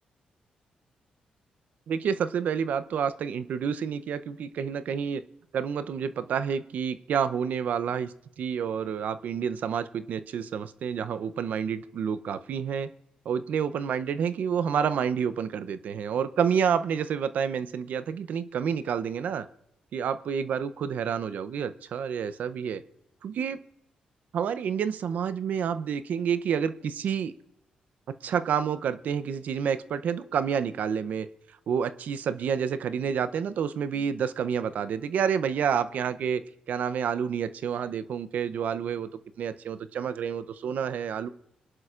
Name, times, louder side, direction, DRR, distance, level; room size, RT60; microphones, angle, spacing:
voice 1, 1.9-5.2 5.5-12.9 13.3-19.5 19.9-22.8 23.2-23.6 24.3-27.3 28.2-31.3 31.7-36.4 36.7-39.1 39.4-41.3, right 7 dB, 70° right, 13 dB, 0.6 m, -29 dB
24.5 x 11.0 x 2.5 m, 0.80 s
cardioid pair, 70°, 3 cm